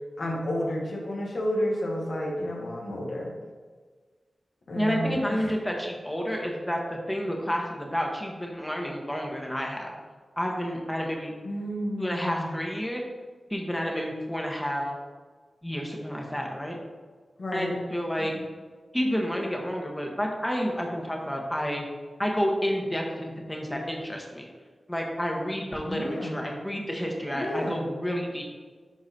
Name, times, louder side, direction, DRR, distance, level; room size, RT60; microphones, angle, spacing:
voice 1, 0.2-3.3 4.7-5.5 11.4-12.6 17.4-17.7 18.2-18.5 25.8-26.4 27.3-27.9, equal, 70° left, -2 dB, 1.1 m, -31 dB
voice 2, 4.7-9.9 10.4-11.3 12.0-13.0 13.5-14.8 15.6-16.8 17.5-18.3 18.9-21.8 22.2-24.5 24.9-28.4, equal, 10° left, 0 dB, 1.3 m, -30 dB
10.5 x 3.9 x 2.8 m, 1.5 s
wide cardioid pair, 65°, 0 cm